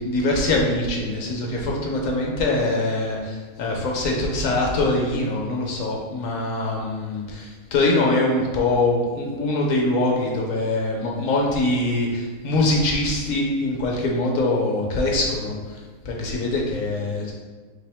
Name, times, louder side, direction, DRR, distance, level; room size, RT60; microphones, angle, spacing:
voice 1, 0.0-15.8 16.0-17.3, left 2 dB, 65° left, -1 dB, 1.1 m, -23 dB
4.2 x 3.0 x 3.4 m, 1.4 s
omnidirectional pair, 1.6 m